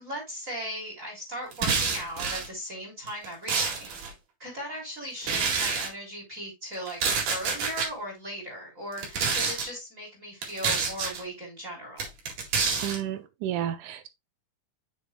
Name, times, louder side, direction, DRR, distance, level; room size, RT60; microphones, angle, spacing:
voice 1, 0.0-3.9 4.4-7.0 7.3-12.1, equal, 20° right, 3.6 m, -38 dB
sound 1, 1.5-2.5 3.1-4.1 5.2-5.9 6.9-7.9 8.9-9.7 10.4-11.2 12.0-13.0, right 5 dB, 60° right, 3.5 m, -28 dB
voice 2, 12.8-14.1, right 11 dB, 75° right, 1.9 m, -31 dB
8.0 x 6.6 x 2.2 m
omnidirectional pair, 4.3 m